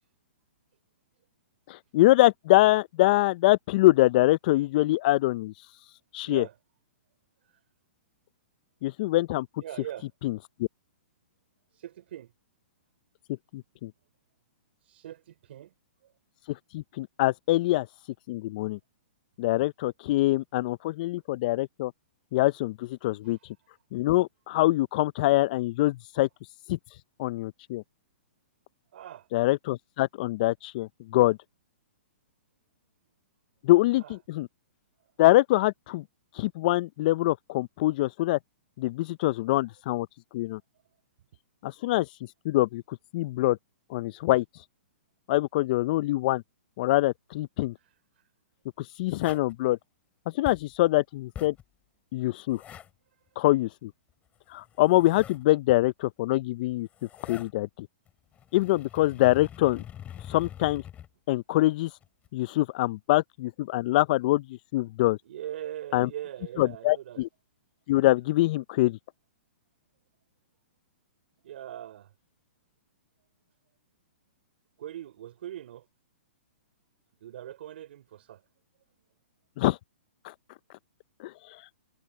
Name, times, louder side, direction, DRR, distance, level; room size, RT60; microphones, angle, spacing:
voice 1, 1.7-5.7 6.1-6.5 8.8-9.5 10.2-10.7 13.5-13.9 16.5-17.9 18.3-18.8 19.4-21.9 22.3-23.4 23.9-26.3 26.7-27.8 29.3-31.4 33.6-34.5 35.2-36.0 36.3-38.4 38.8-40.1 40.3-40.6 41.6-43.6 43.9-44.6 45.3-46.4 46.8-47.7 48.8-49.8 50.3-51.5 52.1-52.6 53.4-53.9 54.5-56.9 57.3-57.9 58.5-59.8 60.2-60.8 61.3-62.0 62.3-65.2 65.9-66.1 66.6-67.3 67.9-69.0 79.6-79.8 80.2-80.3 81.2-81.7, left 17 dB, 45° left, 0.5 m, -24 dB
voice 2, 6.2-6.5 7.4-7.5 9.6-10.1 11.7-12.3 14.8-15.7 23.2-23.4 28.9-29.3 34.0-34.2 40.5-40.6 47.8-48.2 65.2-67.2 71.4-72.1 74.8-75.9 77.2-78.4, right 12 dB, 60° right, 5.1 m, -41 dB
sound 1, 49.2-49.5 50.4-50.7 51.3-51.6 52.5-52.9 54.5-55.4 56.7-57.5 58.1-61.1 62.0-62.3, left 10 dB, 20° left, 7.7 m, -44 dB
hypercardioid pair, 135°, 7 cm